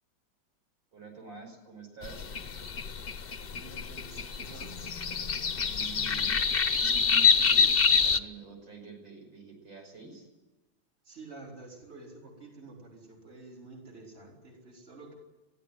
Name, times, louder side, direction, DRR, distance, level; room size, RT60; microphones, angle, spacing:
voice 1, 0.9-2.3 5.6-6.4 6.7-10.3, right 4 dB, 75° right, 2 dB, 6.5 m, -47 dB
sound 1, 2.0-8.2, left 6 dB, 40° left, 0.8 m, -26 dB
voice 2, 3.5-4.8 11.0-15.1, right 2 dB, 30° right, -1 dB, 4.4 m, -49 dB
22.5 x 15.5 x 9.3 m, 1.1 s
omnidirectional pair, 2.1 m